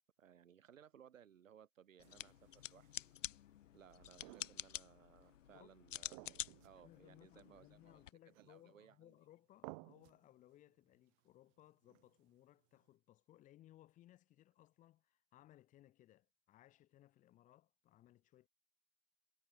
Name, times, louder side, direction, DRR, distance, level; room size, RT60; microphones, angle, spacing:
voice 1, 0.2-3.1 3.7-6.3 6.6-9.1, right 9 dB, 85° right, 6.3 m, -63 dB
sound 1, 2.0-8.1, left 12 dB, 75° left, 1.2 m, -49 dB
sound 2, 2.0-3.1 3.9-4.9 5.2-5.3 6.1-6.9 7.2-7.3 8.3-8.8 9.6-10.2 11.8-12.3, right 34 dB, 25° right, 0.9 m, -57 dB
voice 2, 6.8-18.5, left 14 dB, 20° left, 2.5 m, -65 dB
hypercardioid pair, 160°, 38 cm